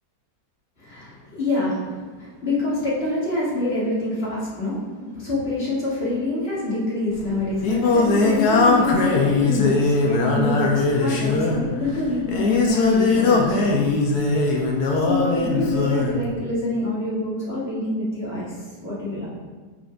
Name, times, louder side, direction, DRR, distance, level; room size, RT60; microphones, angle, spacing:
voice 1, 0.8-13.6 15.0-19.3, left 2 dB, 40° left, -9 dB, 2.2 m, -26 dB
Singing, 7.1-16.2, left 3 dB, 75° left, 1.4 m, -20 dB
8.9 x 4.7 x 2.5 m, 1.4 s
omnidirectional pair, 1.7 m